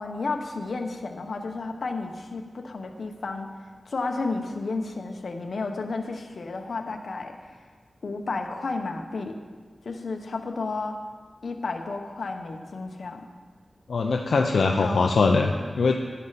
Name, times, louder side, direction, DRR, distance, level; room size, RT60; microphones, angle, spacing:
voice 1, 0.0-3.5 3.8-7.6 8.0-9.4 9.8-11.0 11.4-13.3 14.8-15.5, left 3 dB, 70° left, 4 dB, 1.0 m, -32 dB
voice 2, 13.9-15.9, left 4 dB, 90° left, 2 dB, 0.6 m, -22 dB
11.5 x 10.5 x 4.1 m, 1.6 s
wide cardioid pair, 95°, 0 cm